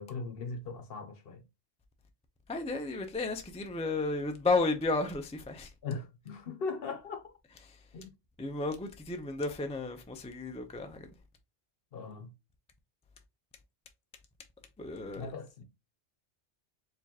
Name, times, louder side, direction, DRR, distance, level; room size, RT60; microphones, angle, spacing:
voice 1, 0.0-1.4 5.8-7.3 7.9-8.1 11.9-12.3 15.2-15.6, left 4 dB, 60° left, 0.9 m, -39 dB
voice 2, 2.5-5.7 8.4-11.1 14.8-15.3, left 3 dB, 10° left, 0.3 m, -33 dB
4.5 x 3.1 x 2.8 m
omnidirectional pair, 1.2 m